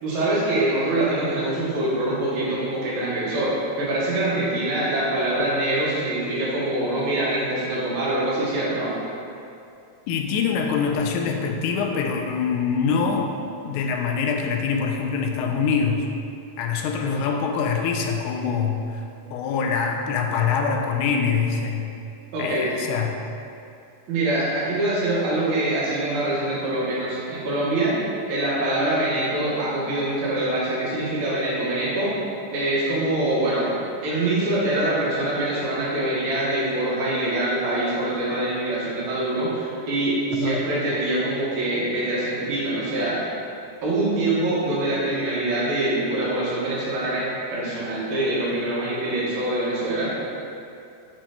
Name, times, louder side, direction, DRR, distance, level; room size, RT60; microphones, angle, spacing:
voice 1, 0.0-8.9 22.3-22.7 24.1-27.9 28.3-32.1 32.5-33.8 34.0-43.2 43.8-47.2 47.5-50.1, right 1 dB, 70° right, -8 dB, 2.8 m, -24 dB
voice 2, 10.1-13.4 13.6-16.1 16.6-19.0 19.3-21.9 22.4-23.2 40.3-40.6, left 5 dB, 80° left, 2 dB, 1.9 m, -24 dB
8.7 x 4.4 x 2.9 m, 2.6 s
omnidirectional pair, 3.7 m